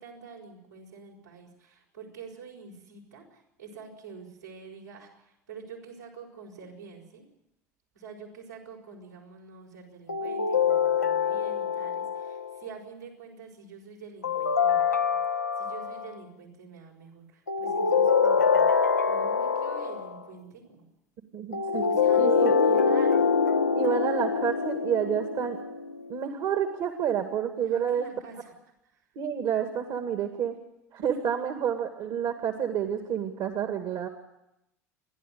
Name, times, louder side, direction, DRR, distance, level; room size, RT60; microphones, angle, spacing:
voice 1, 0.0-7.2 7.9-15.2 15.6-20.9 21.8-23.2 27.6-28.5 28.9-29.0, right 5 dB, 80° right, -2 dB, 5.7 m, -46 dB
sound 1, 10.1-12.6 14.2-16.1 17.5-20.2 21.5-26.0, left 5 dB, 90° left, 0.8 m, -25 dB
voice 2, 21.3-21.9 22.2-22.5 23.8-25.6 26.1-28.1 29.2-30.6 30.9-34.1, right 8 dB, 50° right, 7 dB, 2.0 m, -29 dB
29.0 x 11.5 x 9.4 m, 0.86 s
figure-of-eight pair, 70°, 9 cm